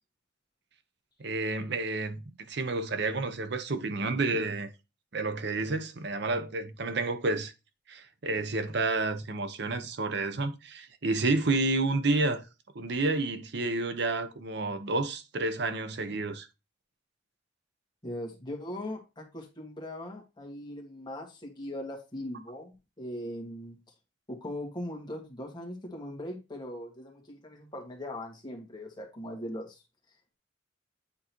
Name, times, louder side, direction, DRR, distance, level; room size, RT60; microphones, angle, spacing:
voice 1, 1.2-4.7 5.1-7.5 7.9-12.4 12.7-16.5, right 3 dB, 65° right, 0.8 m, -30 dB
voice 2, 18.0-23.8 24.3-29.8, left 1 dB, 25° left, 1.7 m, -40 dB
8.6 x 3.9 x 3.0 m
head